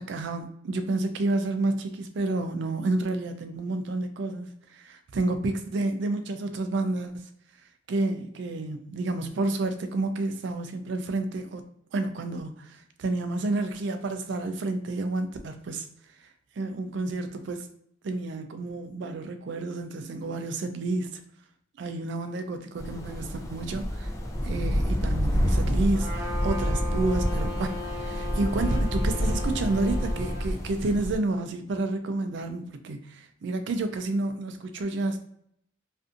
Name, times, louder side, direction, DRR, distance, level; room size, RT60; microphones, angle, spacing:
voice 1, 0.0-7.3 7.9-11.6 11.9-15.9 16.6-17.7 18.0-21.2 21.8-24.1 24.4-35.2, right 2 dB, 65° right, 8 dB, 0.4 m, -30 dB
sound 1, 22.8-31.2, equal, 15° left, 0.3 m, -28 dB
Trumpet, 25.9-30.5, left 2 dB, 20° right, 0.9 m, -37 dB
2.5 x 2.5 x 2.4 m, 0.70 s
head